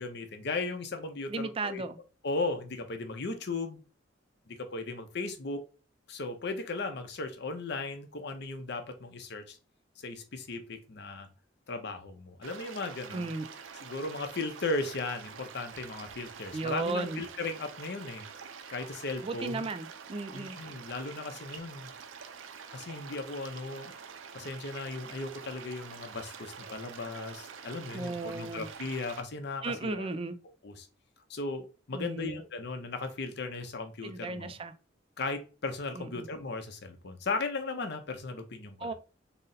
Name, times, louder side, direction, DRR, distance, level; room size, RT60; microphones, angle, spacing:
voice 1, 0.0-1.8 2.2-3.8 4.5-5.6 6.1-9.6 10.0-11.3 11.7-13.3 13.8-18.3 18.7-19.7 20.3-21.9 22.7-23.9 24.3-30.1 30.6-30.9 31.3-34.5 35.2-38.9, left 3 dB, 60° left, 0.7 m, -36 dB
voice 2, 1.3-2.0 13.1-13.5 16.5-17.2 19.2-20.6 27.9-28.7 29.6-30.4 31.9-32.4 34.0-34.7 35.9-36.3 38.8-38.9, right 3 dB, 30° right, 0.3 m, -35 dB
sound 1, 12.4-29.2, right 6 dB, 90° right, 0.5 m, -47 dB
4.0 x 2.1 x 3.9 m
head